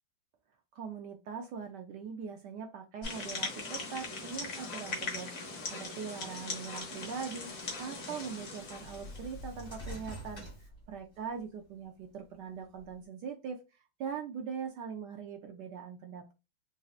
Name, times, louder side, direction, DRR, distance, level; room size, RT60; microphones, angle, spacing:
voice 1, 0.7-7.5 7.8-13.6 14.0-16.3, right 6 dB, 75° right, 5 dB, 1.0 m, -41 dB
sound 1, 3.0-9.8, left 3 dB, 50° left, 1.2 m, -40 dB
sound 2, 8.3-11.4 11.9-12.9, equal, 20° left, 1.3 m, -46 dB
4.1 x 2.6 x 2.3 m, 0.27 s
omnidirectional pair, 2.2 m